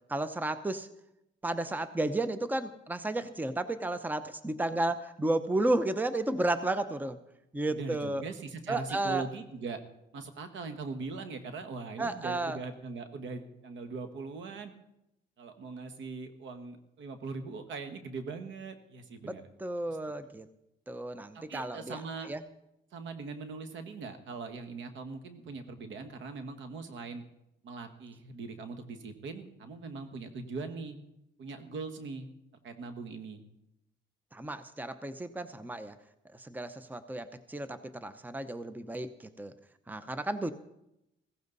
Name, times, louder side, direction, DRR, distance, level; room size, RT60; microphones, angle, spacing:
voice 1, 0.1-0.9 1.4-7.2 7.5-8.2 8.7-9.3 12.0-12.6 19.2-20.5 20.9-22.0 22.3-22.4 34.3-35.9 36.4-39.1 39.4-39.5 39.9-40.5, right 2 dB, 10° right, 12 dB, 0.8 m, -32 dB
voice 2, 7.7-9.8 10.1-14.7 15.4-19.4 19.9-20.0 21.3-22.3 22.9-27.2 27.6-31.0 31.4-32.3 32.6-33.4, right 4 dB, 75° right, 8 dB, 1.6 m, -41 dB
15.5 x 15.0 x 4.1 m, 0.86 s
cardioid pair, 90°, 20 cm